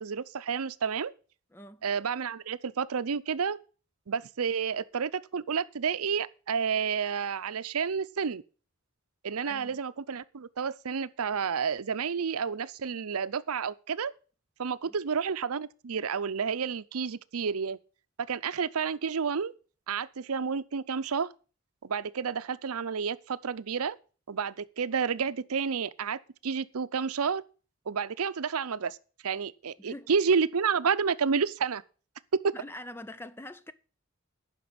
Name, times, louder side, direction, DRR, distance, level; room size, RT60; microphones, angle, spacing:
voice 1, 0.0-1.1 1.8-3.6 4.1-8.4 9.2-14.1 14.6-17.8 18.2-19.5 19.9-21.3 21.8-24.0 24.3-27.4 27.9-29.0 29.2-31.8 32.4-32.5, right 6 dB, 90° right, 0.6 m, -30 dB
voice 2, 1.5-1.8 9.4-9.8 14.9-15.0 29.8-30.1 32.5-33.7, left 1 dB, 10° left, 0.5 m, -44 dB
10.0 x 6.0 x 8.6 m
head